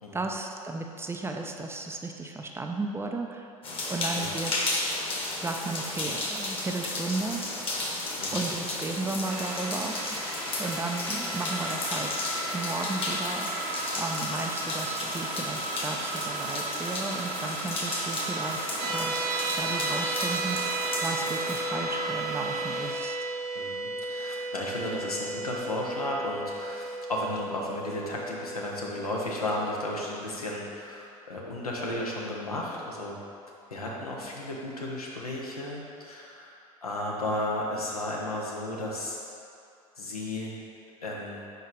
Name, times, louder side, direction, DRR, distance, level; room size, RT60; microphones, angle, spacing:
voice 1, 0.1-3.5 3.9-4.5 5.4-7.4 8.3-10.0 10.6-12.1 12.5-13.5 14.0-19.1 19.6-23.2, right 3 dB, 15° right, 3 dB, 0.5 m, -34 dB
sound 1, 3.6-21.6, left 2 dB, 30° left, 1.2 m, -33 dB
sound 2, 9.2-22.9, right 2 dB, 75° right, 1.0 m, -35 dB
sound 3, 18.8-30.0, right 3 dB, 45° right, 0.8 m, -34 dB
voice 2, 23.5-33.2 33.7-36.5 36.8-39.2 40.0-40.6 41.0-41.4, left 1 dB, 85° left, -3 dB, 1.0 m, -34 dB
4.6 x 4.6 x 5.0 m, 2.5 s
figure-of-eight pair, 75°, 18 cm